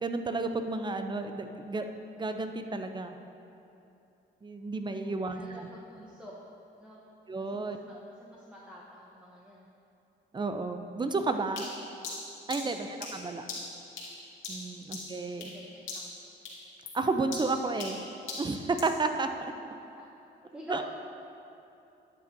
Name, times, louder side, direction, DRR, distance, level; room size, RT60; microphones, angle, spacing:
voice 1, 0.0-1.9 2.2-3.2 4.4-5.7 7.3-7.8 10.3-11.7 12.5-13.5 14.5-15.5 16.9-18.0 18.4-19.5 20.7-20.8, right 3 dB, 25° right, 7 dB, 0.6 m, -32 dB
voice 2, 5.0-6.4 6.8-7.0 7.5-7.9 8.2-9.7 12.5-12.8 13.3-13.4 14.6-14.8 15.5-16.1 20.0-20.1 20.4-20.8, equal, 5° right, -5 dB, 1.0 m, -49 dB
sound 1, 11.6-15.6 15.9-16.2 16.4-19.0, left 3 dB, 80° left, 1.9 m, -40 dB
11.5 x 7.8 x 2.7 m, 2.8 s
cardioid pair, 90°, 20 cm